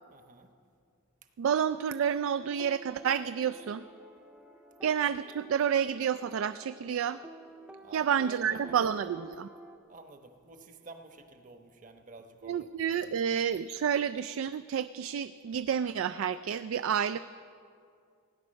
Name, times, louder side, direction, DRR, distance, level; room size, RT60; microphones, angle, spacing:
voice 1, 0.1-0.5 7.8-8.8 9.9-12.7, right 3 dB, 40° right, 6 dB, 1.0 m, -50 dB
voice 2, 1.4-3.8 4.8-7.2 7.9-9.5 12.4-17.2, right 8 dB, 65° right, 13 dB, 0.3 m, -29 dB
sound 1, 1.7-9.8, right 1 dB, 5° right, 0.5 m, -52 dB
17.5 x 9.6 x 6.4 m, 2.3 s
head